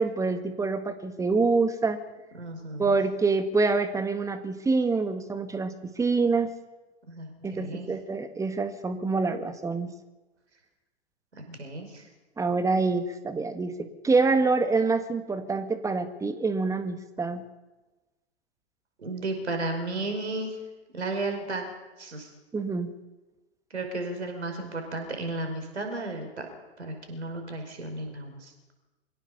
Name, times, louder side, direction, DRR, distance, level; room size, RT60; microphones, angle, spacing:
voice 1, 0.0-2.0 2.8-6.5 7.4-9.9 12.4-17.4 22.5-22.9, right 4 dB, 10° right, 10 dB, 1.6 m, -26 dB
voice 2, 2.3-2.9 7.1-7.9 11.3-12.1 19.0-20.6 20.9-21.7 22.0-22.3 23.7-26.5 26.8-28.5, right 2 dB, 75° right, 5 dB, 5.3 m, -34 dB
23.5 x 17.0 x 6.9 m, 1.2 s
figure-of-eight pair, 100°, 35 cm